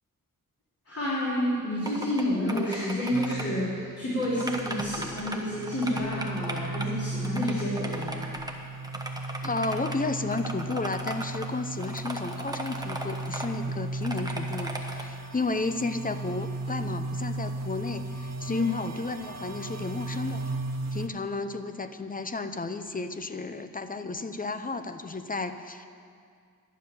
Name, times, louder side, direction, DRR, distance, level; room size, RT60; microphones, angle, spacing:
voice 1, 0.9-8.3 18.5-18.7, left 1 dB, 45° left, -9 dB, 3.6 m, -29 dB
sound 1, 1.9-2.2 2.5-3.4 4.2-5.4 5.6-6.9 7.2-8.5 8.8-10.0 10.3-11.5 11.8-13.5 14.0-15.0, right 1 dB, 10° right, 1.1 m, -37 dB
sound 2, 3.1-21.1, right 2 dB, 55° right, 0.9 m, -36 dB
voice 2, 9.4-20.4 20.9-25.9, left 3 dB, 25° left, 9 dB, 0.6 m, -33 dB
12.0 x 7.0 x 9.8 m, 2.2 s
wide cardioid pair, 110°, 33 cm